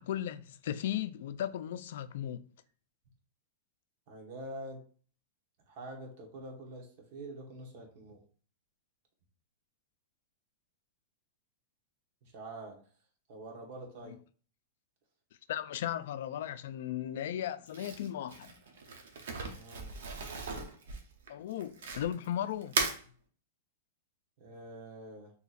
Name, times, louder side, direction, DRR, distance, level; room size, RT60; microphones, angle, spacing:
voice 1, 0.0-2.4 14.1-14.2 15.5-18.5 21.3-22.9, left 11 dB, 65° left, 0.3 m, -36 dB
voice 2, 4.1-4.8 5.7-8.2 12.2-12.8 13.3-14.2 19.5-19.9 24.4-25.3, right 1 dB, 50° right, 1.0 m, -46 dB
Crumpling crinkling, 17.7-22.3 22.6-23.0, right 4 dB, 85° right, 0.7 m, -37 dB
4.0 x 2.8 x 2.4 m
supercardioid pair, 160°, 0 cm